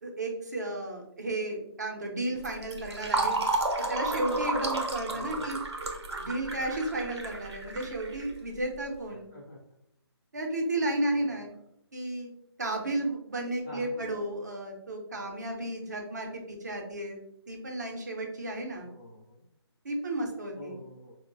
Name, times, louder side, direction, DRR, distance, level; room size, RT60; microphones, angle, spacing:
voice 1, 0.0-3.4 3.9-5.6 6.2-9.3 10.3-11.5 11.9-12.3 12.6-17.2 17.5-18.9 19.8-20.8, right 1 dB, 40° right, 2 dB, 0.6 m, -33 dB
Fill (with liquid), 2.4-8.8, right 2 dB, 80° right, 0.8 m, -32 dB
voice 2, 5.1-5.5 9.1-9.6 11.1-11.4 13.6-14.2 18.9-19.4 20.5-21.2, left 1 dB, 5° left, -11 dB, 0.4 m, -46 dB
4.6 x 2.0 x 2.4 m, 0.76 s
hypercardioid pair, 180°, 14 cm